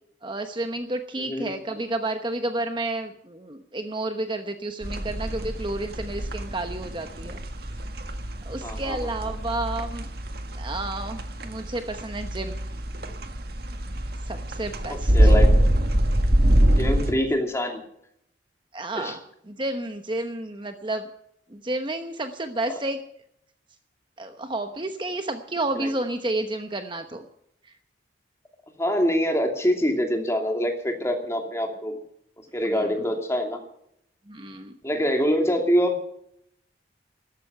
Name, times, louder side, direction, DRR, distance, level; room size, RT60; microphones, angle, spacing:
voice 1, 0.2-7.4 8.4-10.1 10.5-12.6 14.3-15.3 18.7-19.2 19.5-21.0 21.5-23.0 24.2-27.2 32.7-32.9 34.3-34.7, right 2 dB, 25° right, 7 dB, 1.0 m, -31 dB
voice 2, 1.1-1.6 8.6-9.0 14.9-15.5 16.8-17.8 19.0-19.2 25.7-25.9 28.8-31.9 32.5-33.6 34.8-35.9, equal, 15° left, 3 dB, 2.6 m, -25 dB
sound 1, 4.8-17.1, right 1 dB, 55° right, 1.8 m, -24 dB
14.0 x 13.0 x 6.8 m, 0.72 s
head